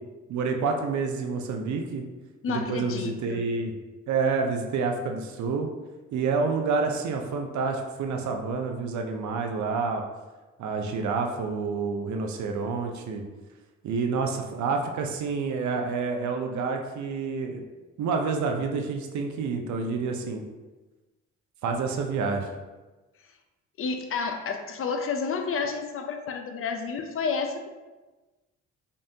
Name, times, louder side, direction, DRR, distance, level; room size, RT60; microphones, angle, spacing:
voice 1, 0.3-2.0 2.5-3.7 4.1-5.7 6.1-10.0 10.6-13.2 13.8-17.6 18.0-20.4 21.6-22.5, right 4 dB, 70° right, 3 dB, 0.6 m, -28 dB
voice 2, 2.4-3.4 23.8-27.7, left 5 dB, 45° left, 5 dB, 0.5 m, -30 dB
5.3 x 2.5 x 2.7 m, 1.2 s
cardioid pair, 90°, 30 cm